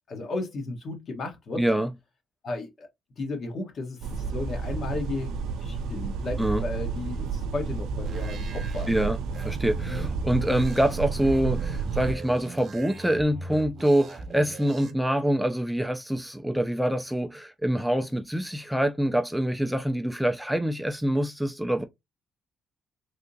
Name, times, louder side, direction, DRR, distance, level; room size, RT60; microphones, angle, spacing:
voice 1, 0.1-1.6 2.4-2.9 3.2-4.0 4.3-5.3 5.6-9.1 9.9-10.1 14.8-14.9, left 2 dB, 55° left, 1.2 m, -34 dB
voice 2, 1.6-1.9 6.4-6.6 8.9-9.2 9.4-21.8, right 1 dB, 5° right, 0.4 m, -25 dB
sound 1, 4.0-12.2, right 5 dB, 85° right, 0.4 m, -31 dB
sound 2, 8.1-14.9, right 3 dB, 60° right, 0.8 m, -41 dB
3.4 x 2.8 x 2.6 m
cardioid pair, 90°, 0 cm